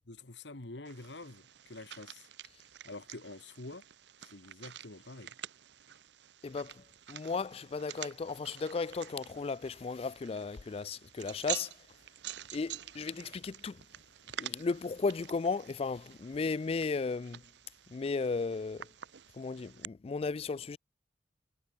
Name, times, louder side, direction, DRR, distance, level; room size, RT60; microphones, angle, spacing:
voice 1, 0.1-2.3 2.8-3.8 4.2-5.4, left 2 dB, 75° left, 1.8 m, -47 dB
sound 1, 0.8-19.8, right 12 dB, 70° right, 0.7 m, -48 dB
voice 2, 6.4-11.7 12.5-13.8 14.4-17.4 17.9-18.9 19.3-20.8, left 4 dB, 35° left, 0.3 m, -35 dB
head